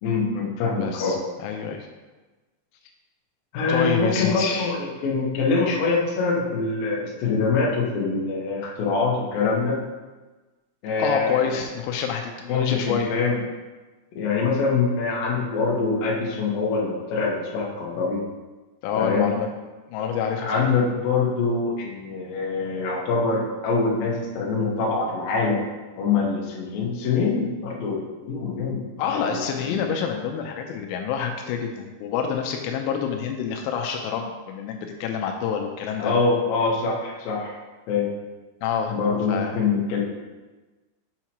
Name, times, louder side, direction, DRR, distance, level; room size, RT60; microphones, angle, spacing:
voice 1, 0.0-1.2 3.5-9.8 10.8-11.6 12.5-13.4 14.1-18.2 19.0-19.3 20.4-25.6 26.0-29.8 36.0-37.6 37.9-38.1 38.9-40.0, left 4 dB, 70° left, -4 dB, 2.3 m, -24 dB
voice 2, 0.8-1.9 3.7-4.7 11.0-13.1 18.8-19.5 19.9-20.7 29.0-36.1 38.6-39.0 39.3-39.6, left 7 dB, 85° left, 3 dB, 3.0 m, -27 dB
7.3 x 5.8 x 3.0 m, 1.2 s
omnidirectional pair, 5.7 m